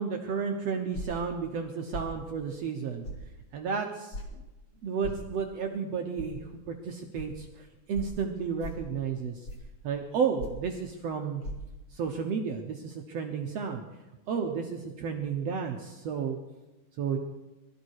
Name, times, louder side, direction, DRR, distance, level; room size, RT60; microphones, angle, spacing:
voice 1, 0.0-3.1 3.5-4.2 4.8-6.4 6.7-9.4 9.8-11.4 11.9-13.8 14.3-16.4 17.0-17.2, right 6 dB, 65° right, 3 dB, 1.7 m, -32 dB
sound 1, 0.9-1.3 1.9-2.1 3.0-3.2 4.1-4.3 5.0-5.2 6.2-6.3 7.1-7.3 7.9-8.2 8.6-8.9 9.4-9.7 10.4-10.7 11.4-11.5, equal, 30° left, 2.3 m, -38 dB
22.0 x 13.5 x 4.8 m, 1.0 s
omnidirectional pair, 4.0 m